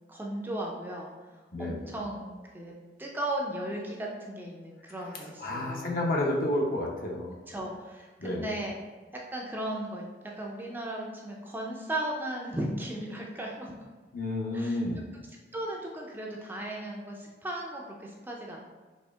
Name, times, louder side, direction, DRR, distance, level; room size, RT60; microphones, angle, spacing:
voice 1, 0.1-1.1 1.6-2.7 3.0-5.9 7.5-8.7 9.1-13.7 14.5-14.8 15.5-18.6, right 1 dB, 10° right, -1 dB, 0.3 m, -36 dB
voice 2, 1.5-1.9 5.4-7.4 8.2-8.4 14.1-15.1, left 1 dB, 50° left, -1 dB, 0.6 m, -30 dB
4.2 x 2.9 x 2.3 m, 1.3 s
head